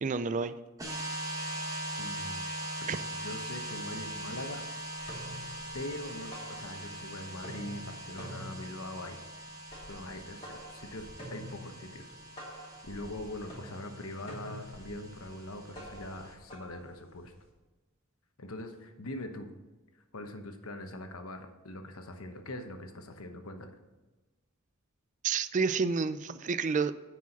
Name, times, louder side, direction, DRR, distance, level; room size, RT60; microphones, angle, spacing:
voice 1, 0.0-0.5 2.9-3.0 25.2-26.9, right 5 dB, 35° right, 13 dB, 0.4 m, -29 dB
sound 1, 0.8-16.3, right 1 dB, 15° right, 1.4 m, -41 dB
voice 2, 2.0-2.4 3.0-4.7 5.7-9.2 9.9-12.1 12.8-17.3 18.4-19.5 20.1-23.7, left 1 dB, 80° left, 6 dB, 1.1 m, -42 dB
sound 2, 5.0-7.1 7.3-17.5, equal, 25° left, 2.8 m, -48 dB
9.6 x 4.8 x 5.9 m, 1.2 s
head